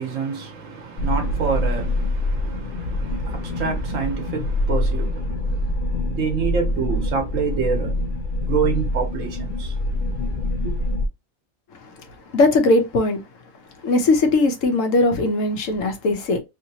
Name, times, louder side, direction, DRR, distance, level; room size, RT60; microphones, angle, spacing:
voice 1, 0.0-8.1 8.4-9.7 10.6-10.8, right 5 dB, 70° right, 1.3 m, -27 dB
sound 1, 1.0-11.1, left 1 dB, 55° left, 0.6 m, -25 dB
voice 2, 12.3-13.2 13.8-16.4, left 2 dB, 75° left, 1.1 m, -19 dB
3.2 x 2.8 x 2.7 m
omnidirectional pair, 1.4 m